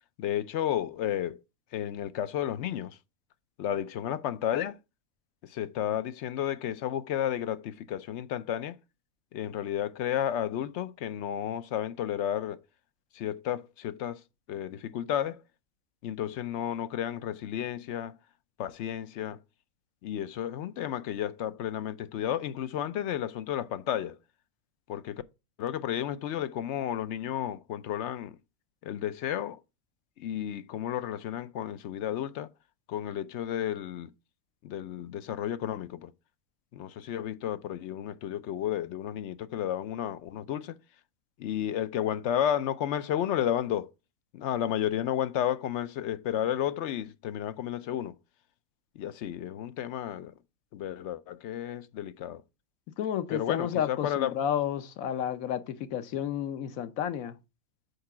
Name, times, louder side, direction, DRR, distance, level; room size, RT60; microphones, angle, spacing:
voice 1, 0.2-1.4 1.7-3.0 3.6-4.8 5.4-8.8 9.3-12.6 13.1-14.2 14.5-15.4 16.0-18.1 18.6-19.4 20.0-24.2 24.9-25.2 25.6-28.4 28.8-29.6 30.2-32.5 32.9-34.1 34.6-36.1 36.7-40.8 41.4-43.9 44.3-48.2 49.0-50.3 50.7-52.4 53.3-54.4, left 10 dB, 65° left, 0.8 m, -32 dB
voice 2, 53.0-57.4, left 9 dB, 85° left, 1.1 m, -31 dB
6.7 x 4.7 x 4.7 m
omnidirectional pair, 1.4 m